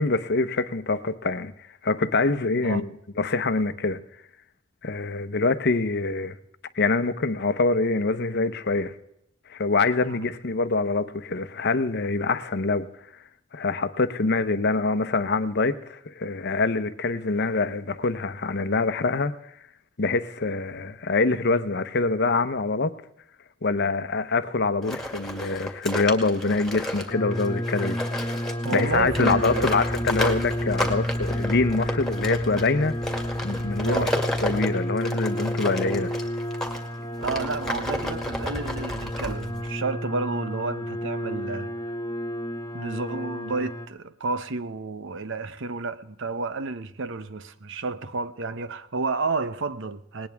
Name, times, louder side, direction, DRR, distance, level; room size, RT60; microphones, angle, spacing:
voice 1, 0.0-1.5 1.8-2.9 3.2-4.0 4.8-6.4 6.8-8.9 9.5-12.9 13.5-19.4 20.0-22.9 23.6-28.0 28.7-33.0 33.4-34.1 34.4-36.1, left 3 dB, 55° left, 0.9 m, -25 dB
sound 1, 24.8-36.8 37.2-39.7, left 1 dB, ahead, 2.2 m, -32 dB
sound 2, 27.1-43.9, equal, 20° left, 1.6 m, -31 dB
voice 2, 28.6-29.7 33.8-34.1 37.2-41.7 42.7-50.3, right 3 dB, 65° right, 0.8 m, -31 dB
sound 3, 28.9-34.5, equal, 20° right, 6.5 m, -40 dB
19.5 x 19.0 x 3.5 m
head